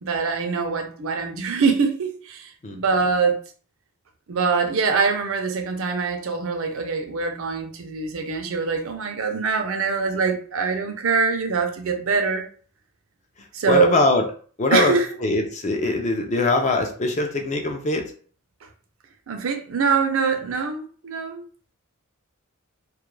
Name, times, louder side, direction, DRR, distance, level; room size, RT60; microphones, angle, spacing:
voice 1, 0.0-3.4 4.3-12.4 13.5-14.0 14.7-15.1 19.3-21.4, right 5 dB, 70° right, 0.5 m, -23 dB
voice 2, 13.7-14.3 14.6-14.9 15.2-18.0, left 2 dB, 35° left, 0.4 m, -21 dB
2.3 x 2.2 x 3.0 m
head